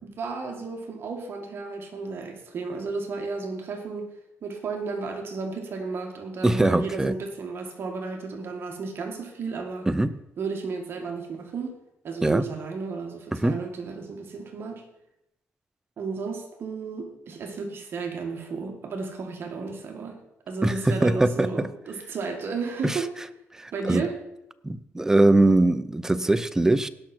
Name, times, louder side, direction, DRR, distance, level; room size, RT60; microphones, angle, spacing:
voice 1, 0.0-4.1 4.4-9.9 10.4-11.7 12.0-14.9 16.0-20.2 20.5-23.1 23.7-24.2, right 4 dB, 50° right, 3 dB, 1.9 m, -33 dB
voice 2, 6.4-7.1 9.9-10.1 12.2-12.4 13.3-13.6 20.6-21.7 22.8-23.0 23.6-24.0 24.6-26.9, right 2 dB, 10° right, 13 dB, 0.6 m, -22 dB
17.5 x 6.0 x 4.4 m, 0.86 s
cardioid pair, 115°, 5 cm